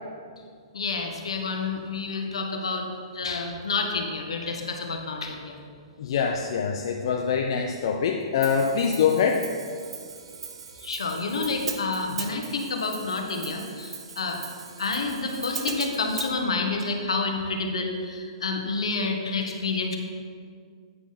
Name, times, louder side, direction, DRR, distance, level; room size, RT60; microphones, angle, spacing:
voice 1, 0.7-2.9 3.1-5.6 10.8-14.4 14.8-20.0, left 3 dB, 80° left, 3 dB, 1.1 m, -29 dB
voice 2, 6.0-9.5, left 6 dB, 60° left, 3 dB, 0.5 m, -24 dB
Hi-hat, 8.4-16.3, right 6 dB, 70° right, 0.8 m, -39 dB
9.1 x 6.0 x 4.2 m, 2.1 s
hypercardioid pair, 120°, 3 cm